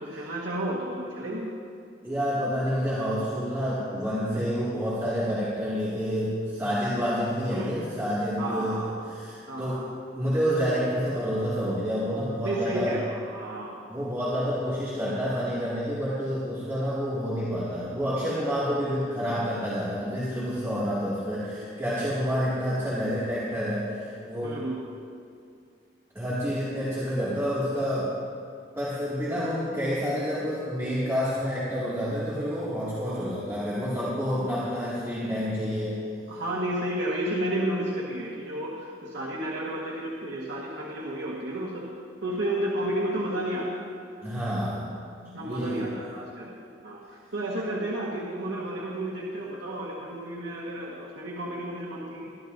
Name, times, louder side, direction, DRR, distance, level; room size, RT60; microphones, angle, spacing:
voice 1, 0.0-1.5 7.5-7.7 8.4-9.0 9.5-9.9 12.4-13.8 24.4-24.8 36.3-41.9 42.2-43.8 44.5-44.8 45.2-46.5 46.8-47.0 47.3-52.3, right 1 dB, 85° right, -4 dB, 1.5 m, -32 dB
voice 2, 2.0-8.8 9.1-9.8 10.1-13.0 13.9-24.6 26.1-28.1 28.8-36.0 44.2-44.9 45.4-45.8, equal, 15° right, -10 dB, 2.2 m, -28 dB
22.0 x 12.0 x 2.7 m, 2.4 s
head